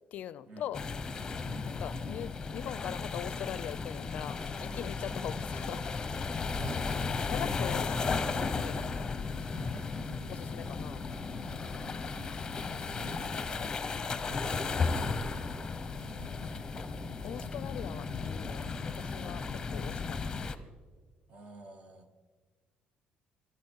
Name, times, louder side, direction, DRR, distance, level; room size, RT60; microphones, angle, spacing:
voice 1, 0.1-0.8 1.6-5.8 7.3-8.8 10.3-11.1 11.6-11.9 14.6-15.2 17.2-20.3, left 10 dB, 55° left, 18 dB, 0.5 m, -42 dB
sound 1, 0.7-20.5, left 4 dB, 20° left, 0.9 m, -35 dB
voice 2, 1.4-2.6 5.0-5.2 6.5-7.0 7.9-8.4 9.6-10.4 14.6-16.8 21.3-22.3, right 3 dB, 40° right, 8 dB, 1.6 m, -50 dB
sound 2, 3.2-16.4, equal, 60° right, 5.7 m, -52 dB
sound 3, 7.7-20.2, equal, 80° right, 6.4 m, -52 dB
25.5 x 11.0 x 4.7 m, 1.4 s
cardioid pair, 155°, 3 cm